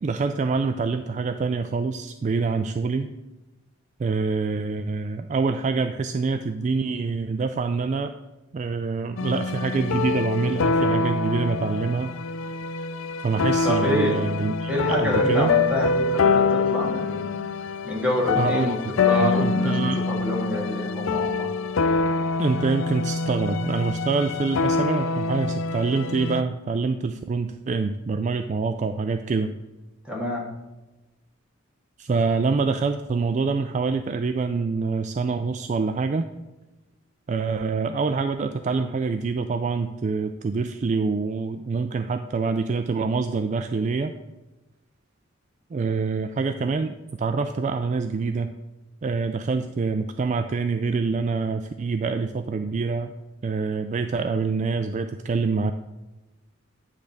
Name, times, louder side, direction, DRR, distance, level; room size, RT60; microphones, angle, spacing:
voice 1, 0.0-3.1 4.0-8.1 8.5-12.1 13.2-15.5 18.3-18.9 19.2-20.1 22.4-29.5 32.0-36.2 37.3-44.1 45.7-48.5 49.0-53.1 53.4-55.7, right 4 dB, 35° right, 8 dB, 0.3 m, -26 dB
sound 1, 9.2-26.4, left 4 dB, 75° left, 0.4 m, -25 dB
voice 2, 13.6-14.2 14.7-17.2 17.8-19.8 20.1-21.5 30.1-30.5, left 1 dB, 5° right, -3 dB, 1.9 m, -27 dB
9.8 x 3.5 x 6.5 m, 1.1 s
head